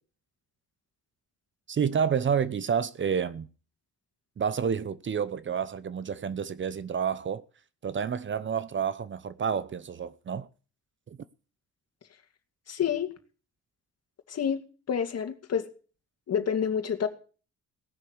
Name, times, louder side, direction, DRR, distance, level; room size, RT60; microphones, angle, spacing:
voice 1, 1.7-3.5 4.4-7.4 7.8-10.5 11.1-11.2, right 7 dB, 40° right, 0.8 m, -29 dB
voice 2, 12.7-13.1 14.3-14.6 14.9-15.6 16.3-17.1, left 7 dB, 55° left, 2.3 m, -28 dB
18.0 x 6.7 x 8.0 m
cardioid pair, 90°, 30 cm